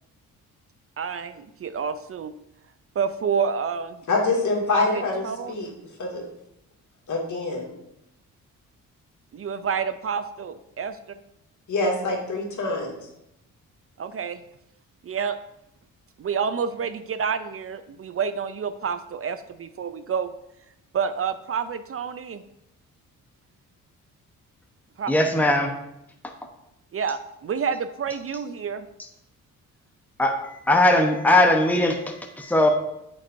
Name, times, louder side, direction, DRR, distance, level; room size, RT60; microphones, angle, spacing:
voice 1, 1.0-2.3 3.0-4.0 4.7-5.5 9.3-11.0 14.0-14.4 15.0-15.4 16.2-20.3 20.9-22.4 25.0-25.1 26.9-28.9, right 6 dB, 45° right, 12 dB, 0.5 m, -28 dB
voice 2, 4.1-5.7 6.0-6.2 7.1-7.7 11.7-13.0, left 3 dB, 60° left, -1 dB, 2.3 m, -25 dB
voice 3, 25.1-25.7 30.2-32.7, left 1 dB, 5° left, 3 dB, 1.0 m, -20 dB
8.6 x 7.4 x 2.7 m, 0.83 s
cardioid pair, 70°, 33 cm